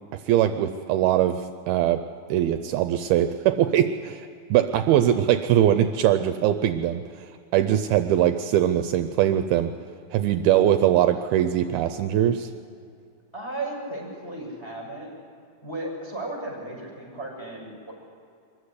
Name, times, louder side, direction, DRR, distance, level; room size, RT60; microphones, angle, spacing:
voice 1, 0.1-2.0 2.3-9.7 10.1-12.5, right 11 dB, 80° right, 8 dB, 2.5 m, -22 dB
voice 2, 13.3-15.1 15.6-17.9, right 2 dB, 5° left, -2 dB, 5.7 m, -35 dB
24.0 x 15.0 x 9.7 m, 2.5 s
omnidirectional pair, 4.6 m